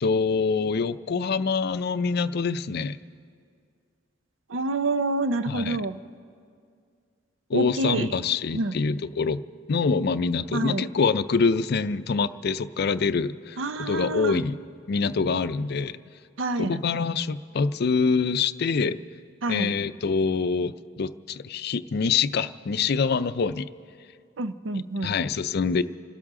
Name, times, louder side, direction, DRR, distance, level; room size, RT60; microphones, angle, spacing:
voice 1, 0.0-3.0 5.5-5.8 7.5-14.6 14.9-16.0 16.6-19.0 19.5-23.7 25.0-25.8, left 5 dB, 55° left, 13 dB, 0.5 m, -25 dB
voice 2, 4.5-6.0 7.5-8.1 8.5-8.8 10.5-10.8 13.6-14.4 16.4-16.8 19.4-19.7 24.4-25.2, right 2 dB, 75° right, 11 dB, 0.7 m, -27 dB
30.0 x 13.0 x 3.7 m, 2.3 s
head